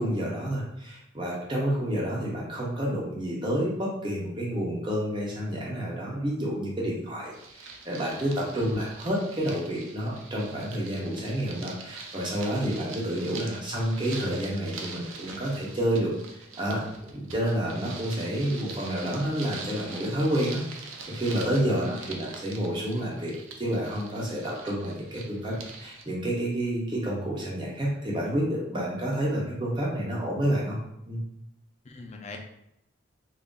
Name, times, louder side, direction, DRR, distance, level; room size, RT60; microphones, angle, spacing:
voice 1, 0.0-16.8 17.1-30.8 31.1-31.2, right 1 dB, 25° right, -4 dB, 0.8 m, -29 dB
sound 1, 7.3-26.0, right 4 dB, 75° right, 0.5 m, -44 dB
voice 2, 21.7-22.1 31.8-32.4, left 2 dB, 35° left, 2 dB, 0.4 m, -41 dB
3.9 x 2.0 x 3.6 m, 0.80 s
head